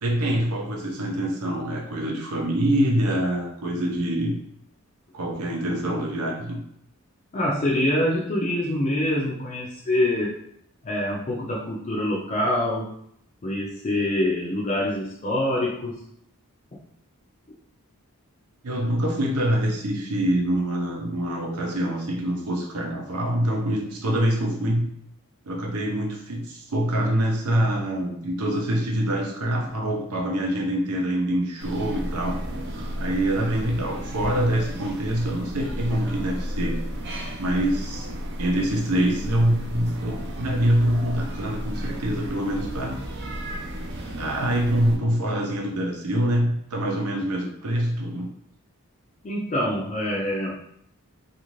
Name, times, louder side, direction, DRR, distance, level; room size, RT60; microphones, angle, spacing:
voice 1, 0.0-4.4 5.1-6.6 18.6-24.9 25.4-32.4 33.0-36.8 37.4-38.1 38.4-43.0 44.2-48.3, right 1 dB, 85° right, 0 dB, 0.7 m, -25 dB
voice 2, 7.3-10.4 10.8-12.9 13.4-16.0 49.2-50.6, left 1 dB, 30° left, -4 dB, 0.4 m, -25 dB
sound 1, 31.6-45.0, equal, 50° right, 0.4 m, -33 dB
2.5 x 2.4 x 3.0 m, 0.71 s
head